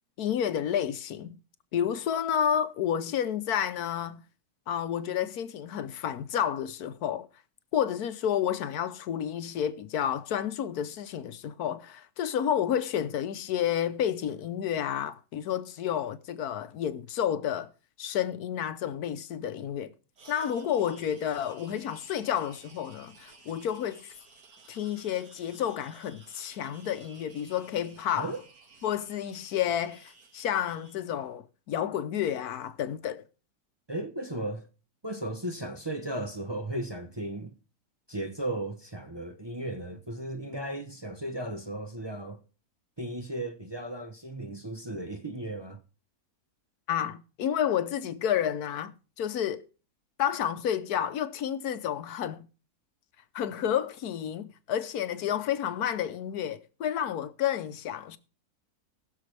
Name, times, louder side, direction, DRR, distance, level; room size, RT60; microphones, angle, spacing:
voice 1, 0.2-1.4 1.7-4.2 4.7-7.3 7.7-17.7 18.0-19.9 20.3-24.1 24.7-28.3 28.8-33.2 46.9-49.7 50.2-52.5 53.3-58.2, left 9 dB, 80° left, 1.3 m, -30 dB
sound 1, 20.2-31.0, right 3 dB, 70° right, 2.3 m, -55 dB
voice 2, 33.9-34.7 35.0-37.6 38.1-42.4 43.0-45.8, right 1 dB, 20° right, 0.8 m, -35 dB
20.0 x 6.7 x 3.3 m
omnidirectional pair, 1.6 m